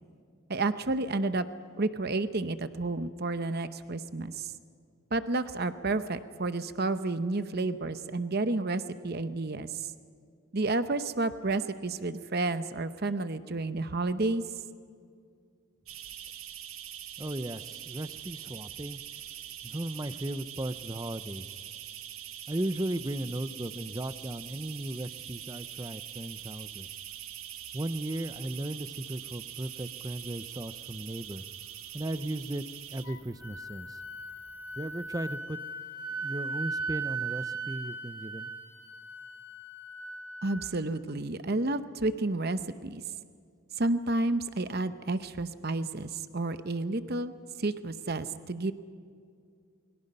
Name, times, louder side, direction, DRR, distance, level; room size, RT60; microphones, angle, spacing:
voice 1, 0.5-1.5 1.8-4.5 5.1-9.9 10.5-14.4 40.4-43.0 43.8-47.3 47.6-48.7, right 2 dB, 45° right, 11 dB, 0.8 m, -31 dB
sound 1, 15.9-35.4, right 10 dB, 80° right, 1.4 m, -44 dB
voice 2, 17.2-19.0 19.6-21.5 22.5-26.9 27.7-31.4 31.9-32.6 32.9-34.0 34.8-35.6 36.2-38.5, right 1 dB, 15° right, 13 dB, 0.6 m, -36 dB
Wind instrument woodwind instrument, 33.0-40.8, right 3 dB, 55° left, 1.7 m, -38 dB
28.5 x 22.5 x 5.5 m, 2.2 s
head